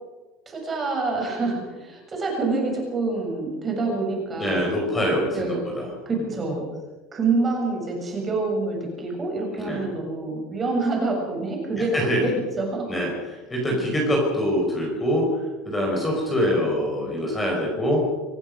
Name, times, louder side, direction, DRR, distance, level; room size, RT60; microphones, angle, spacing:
voice 1, 0.4-4.9 5.3-5.6 6.0-6.7 7.1-12.3 12.6-12.9, right 3 dB, 20° right, 0 dB, 6.8 m, -27 dB
voice 2, 4.4-6.3 9.5-9.9 11.9-12.3 12.9-18.0, equal, 10° left, -1 dB, 5.2 m, -25 dB
26.0 x 16.0 x 6.6 m, 1.2 s
cardioid pair, 165°, 0 cm